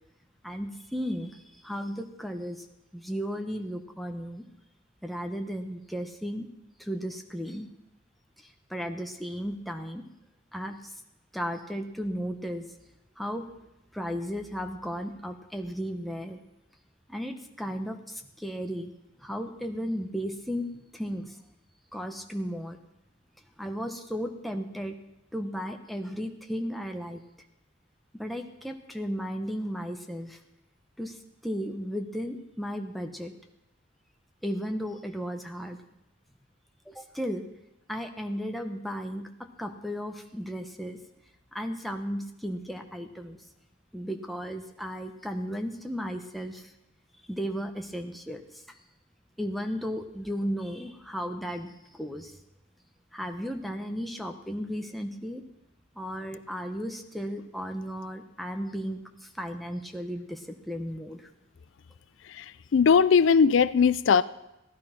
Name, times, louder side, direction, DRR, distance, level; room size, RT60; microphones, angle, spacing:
voice 1, 0.4-2.6 2.9-4.4 5.0-6.5 6.8-7.7 8.7-10.0 10.5-10.7 11.3-12.6 13.2-13.4 13.9-16.4 17.1-18.9 19.2-21.3 21.9-22.8 23.6-25.0 25.3-27.2 28.1-30.4 31.0-31.1 31.4-33.3 34.4-35.8 36.9-37.4 37.9-39.3 39.6-41.0 41.5-43.4 43.9-46.6 47.3-48.4 49.4-52.4 53.1-55.4 56.0-59.0 59.4-61.2, equal, ahead, 4 dB, 1.0 m, -34 dB
voice 2, 62.7-64.2, left 6 dB, 70° left, 17 dB, 0.4 m, -19 dB
15.5 x 11.5 x 5.9 m, 0.91 s
head